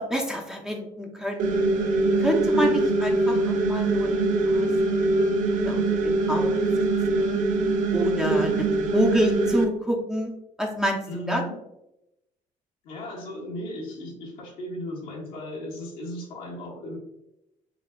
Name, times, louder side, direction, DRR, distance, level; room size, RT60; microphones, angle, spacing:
voice 1, 0.0-1.5 2.2-5.1 5.6-6.7 7.1-7.4 7.9-10.3 10.6-11.0 11.3-11.4, equal, 5° right, 0 dB, 0.5 m, -28 dB
sound 1, 1.4-9.6, right 2 dB, 70° right, 0.4 m, -23 dB
voice 2, 11.1-11.5 12.8-17.0, left 1 dB, 85° left, -3 dB, 1.1 m, -36 dB
4.1 x 2.3 x 2.2 m, 0.87 s
cardioid pair, 95°, 14 cm